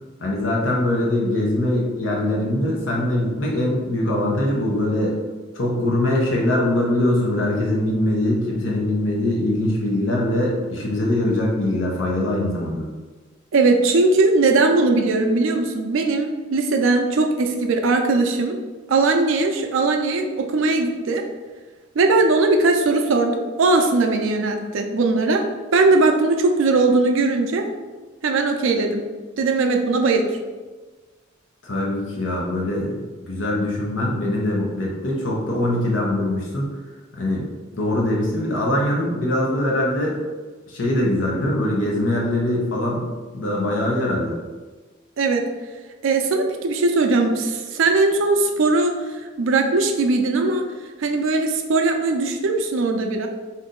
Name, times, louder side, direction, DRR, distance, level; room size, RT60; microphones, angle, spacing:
voice 1, 0.2-5.2 5.5-12.9 31.6-36.7 37.1-37.5 37.7-40.2 40.7-43.1 43.3-44.3, left 1 dB, 70° left, -3 dB, 0.9 m, -22 dB
voice 2, 13.5-18.6 18.9-21.2 21.9-25.4 25.7-27.7 28.2-29.0 29.4-30.4 45.2-45.4 46.0-50.7 51.0-53.3, right 3 dB, 80° right, 4 dB, 0.4 m, -19 dB
2.8 x 2.6 x 3.7 m, 1.3 s
head